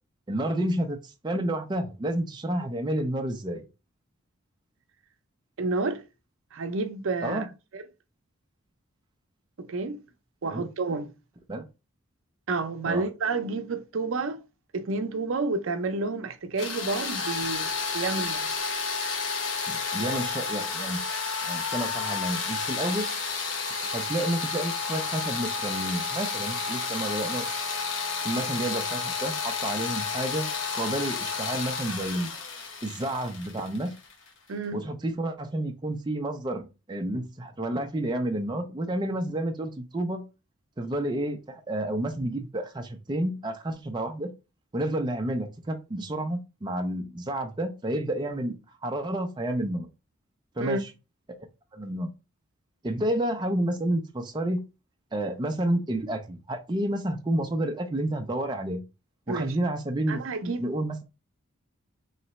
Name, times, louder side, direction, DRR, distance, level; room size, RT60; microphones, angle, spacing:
voice 1, 0.3-3.6 7.2-7.5 10.5-10.7 11.5-11.7 12.8-13.1 19.7-21.0 21.4-23.1 23.9-27.5 28.2-32.3 32.8-33.9 34.7-40.2 40.8-44.3 44.7-49.9 50.6-50.9 51.7-52.1 52.8-54.6 55.1-58.8 59.3-61.0, right 1 dB, 20° right, 0.4 m, -30 dB
voice 2, 5.6-6.0 6.5-7.5 7.7-7.8 9.6-10.0 10.4-11.1 12.5-14.4 14.7-18.5 34.5-34.9 50.6-50.8 59.3-59.5 60.1-60.6, right 3 dB, 70° right, 0.5 m, -30 dB
sound 1, 16.6-34.3, left 5 dB, 60° left, 1.0 m, -31 dB
3.2 x 2.9 x 4.1 m
head